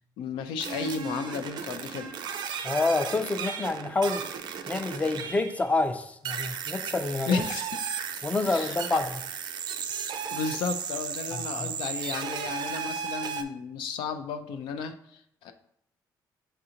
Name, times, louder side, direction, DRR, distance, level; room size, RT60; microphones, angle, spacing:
voice 1, 0.2-2.1 7.3-7.7 8.4-9.0 10.3-15.5, left 5 dB, 90° left, 7 dB, 0.4 m, -33 dB
sound 1, 0.6-5.7 6.2-13.4, right 7 dB, 70° right, 0.4 m, -35 dB
voice 2, 2.6-4.2 4.7-7.4 8.2-9.0 11.3-11.7, left 3 dB, 15° left, 8 dB, 0.4 m, -28 dB
6.5 x 2.5 x 2.8 m, 0.73 s
cardioid pair, 95°, 8 cm